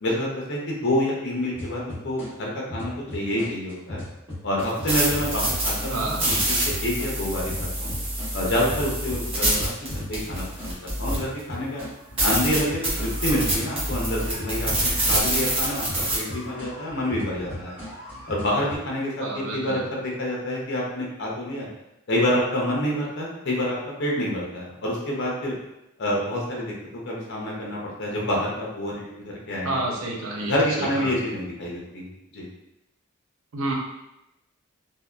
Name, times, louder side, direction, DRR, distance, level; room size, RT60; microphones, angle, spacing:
voice 1, 0.0-4.0 4.4-7.5 7.8-7.9 8.3-10.7 11.0-11.8 12.2-15.9 16.1-17.8 18.3-21.7 22.1-25.5 26.0-29.8 30.4-32.5, left 1 dB, 55° left, -3 dB, 0.6 m, -27 dB
sound 1, 1.5-2.3 2.7-7.1 7.5-18.8, left 1 dB, 10° right, 1.2 m, -37 dB
sound 2, 4.6-11.4 11.8-11.9 12.2-16.2, right 1 dB, 25° right, 0.7 m, -26 dB
voice 2, 5.9-6.2 19.2-19.8 29.6-31.1 33.5-33.7, right 2 dB, 85° right, -2 dB, 0.6 m, -29 dB
2.7 x 2.1 x 2.3 m, 0.91 s
head